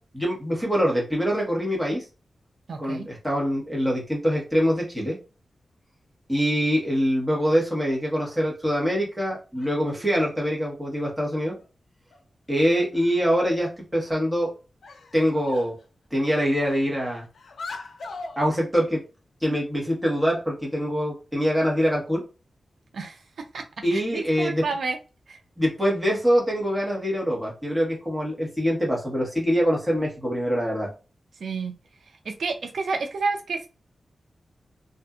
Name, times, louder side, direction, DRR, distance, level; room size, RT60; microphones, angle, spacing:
voice 1, 0.1-2.0 2.8-5.2 6.3-11.5 12.5-14.5 15.1-15.7 16.1-17.3 18.4-19.0 19.4-22.2 23.8-24.6 25.6-30.9, equal, 5° right, -3 dB, 1.2 m, -24 dB
voice 2, 2.7-3.1 22.9-23.2 23.5-23.6 23.9-25.0 25.3-25.4 31.4-31.7 32.2-33.7, right 4 dB, 80° right, 5 dB, 0.4 m, -29 dB
sound 1, 8.1-8.5 9.6-10.4 11.6-11.7 12.1-12.2 12.6-12.7 12.9-13.6 14.2-14.4 14.8-15.8 16.1-18.4, left 3 dB, 80° left, 0.5 m, -41 dB
2.6 x 2.5 x 2.3 m, 0.32 s
wide cardioid pair, 125°, 0 cm